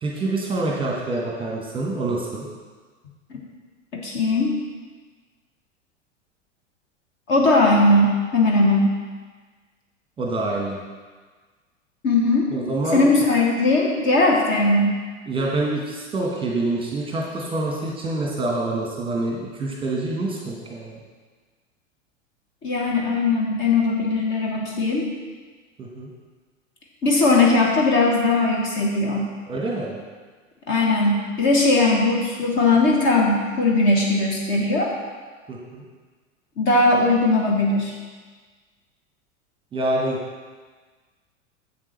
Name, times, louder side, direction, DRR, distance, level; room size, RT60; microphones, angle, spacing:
voice 1, 0.0-2.4 10.2-10.8 12.5-13.0 15.3-21.0 25.8-26.1 29.5-30.0 35.5-35.8 39.7-40.2, right 2 dB, 15° right, -2 dB, 1.3 m, -26 dB
voice 2, 3.9-4.6 7.3-8.9 12.0-12.5 12.9-15.0 22.6-25.1 27.0-29.3 30.7-34.9 36.6-37.9, left 2 dB, 30° left, -1 dB, 1.3 m, -19 dB
7.6 x 7.5 x 3.3 m, 1.4 s
figure-of-eight pair, 90°, 38 cm